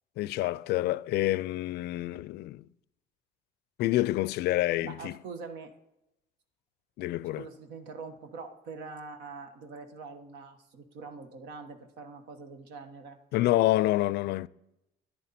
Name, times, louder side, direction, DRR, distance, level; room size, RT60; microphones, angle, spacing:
voice 1, 0.2-2.7 3.8-5.2 7.0-7.5 13.3-14.5, left 16 dB, 75° left, 0.4 m, -27 dB
voice 2, 4.8-5.7 7.4-13.2, right 4 dB, 90° right, 1.3 m, -44 dB
13.5 x 10.5 x 4.2 m
cardioid pair, 110°, 17 cm